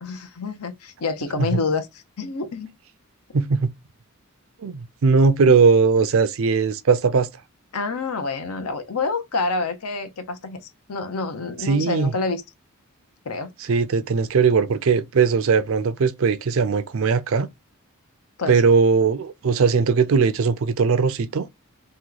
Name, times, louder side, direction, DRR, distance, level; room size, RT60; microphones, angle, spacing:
voice 1, 0.0-2.7 7.7-12.4 13.2-13.5 18.4-18.6, left 3 dB, 80° left, 0.7 m, -28 dB
voice 2, 3.3-3.7 4.6-7.3 11.6-12.1 13.7-17.5 18.5-21.5, right 5 dB, 65° right, 0.4 m, -19 dB
3.0 x 2.2 x 3.8 m
head